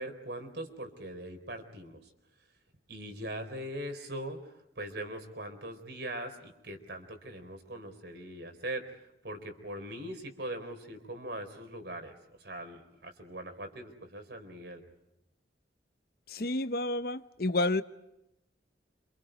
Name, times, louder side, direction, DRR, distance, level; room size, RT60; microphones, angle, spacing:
voice 1, 0.0-2.1 2.9-14.8, right 1 dB, 65° right, 4.2 m, -41 dB
voice 2, 16.3-17.8, left 2 dB, 50° left, 0.9 m, -30 dB
28.5 x 27.0 x 5.2 m
head